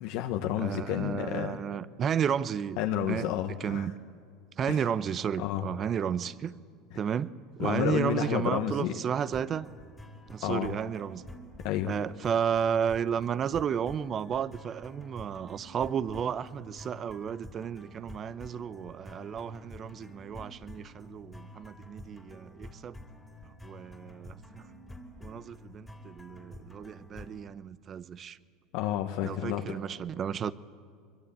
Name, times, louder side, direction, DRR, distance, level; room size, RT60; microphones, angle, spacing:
voice 1, 0.0-1.6 2.8-3.9 4.7-4.8 5.4-5.6 7.6-8.9 10.4-10.7 11.6-11.9 28.7-29.7, left 11 dB, 65° left, 1.3 m, -30 dB
voice 2, 0.6-2.8 3.1-3.3 3.6-3.9 4.6-6.5 6.9-7.3 7.6-9.7 10.3-11.2 11.8-23.0 23.6-24.7 25.2-28.4 29.2-30.5, right 8 dB, 35° right, 0.8 m, -32 dB
sound 1, 9.3-27.5, left 1 dB, 10° left, 2.8 m, -49 dB
22.5 x 22.5 x 8.9 m
supercardioid pair, 115°, 0 cm